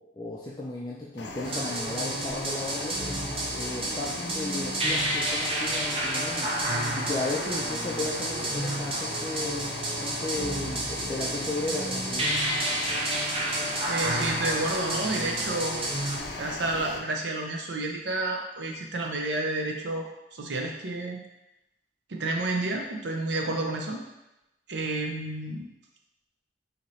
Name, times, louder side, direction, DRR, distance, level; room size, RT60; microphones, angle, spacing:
voice 1, 0.0-3.0 3.5-6.5 6.9-9.7 10.0-12.3, left 2 dB, 25° left, -6 dB, 0.4 m, -35 dB
sound 1, 1.2-17.0, left 2 dB, 80° left, 0.5 m, -38 dB
sound 2, 1.4-16.2, right 1 dB, 30° right, 0.7 m, -30 dB
voice 2, 13.9-15.8 16.4-21.2 22.1-24.0 24.7-25.7, right 2 dB, 75° right, 2 dB, 0.6 m, -30 dB
4.0 x 2.8 x 3.1 m, 0.91 s
head